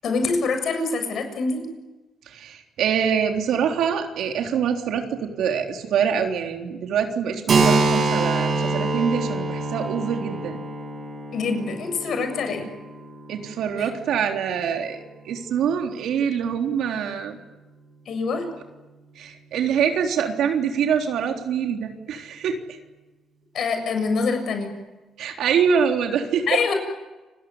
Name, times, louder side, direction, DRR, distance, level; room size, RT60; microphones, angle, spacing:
voice 1, 0.0-1.7 11.3-12.7 13.8-13.9 18.1-18.5 23.5-24.8 26.5-26.7, left 4 dB, 60° left, 6 dB, 7.3 m, -25 dB
voice 2, 2.3-10.6 13.3-17.4 19.2-22.8 25.2-26.5, right 7 dB, 80° right, 3 dB, 3.7 m, -25 dB
Keyboard (musical), 7.5-14.9, right 3 dB, 45° right, 4.9 m, -26 dB
30.0 x 20.0 x 9.7 m, 1.1 s
cardioid pair, 120°, 0 cm